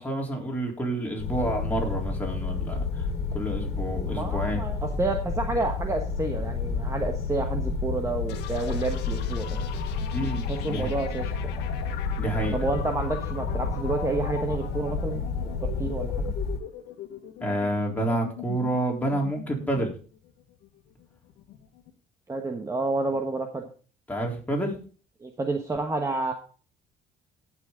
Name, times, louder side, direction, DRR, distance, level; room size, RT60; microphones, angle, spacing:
voice 1, 0.0-3.1 3.3-4.6 10.1-10.9 12.2-12.6 17.4-19.9 24.1-24.8, right 1 dB, 10° left, -1 dB, 3.7 m, -29 dB
sound 1, 1.2-16.6, left 4 dB, 70° left, 2.0 m, -30 dB
voice 2, 4.0-9.7 10.5-11.3 12.5-16.3 22.3-23.7 25.2-26.3, right 3 dB, 20° right, 4 dB, 1.3 m, -30 dB
sound 2, 8.3-21.9, left 11 dB, 90° left, 1.6 m, -41 dB
18.0 x 6.2 x 3.8 m, 0.39 s
cardioid pair, 110°, 17 cm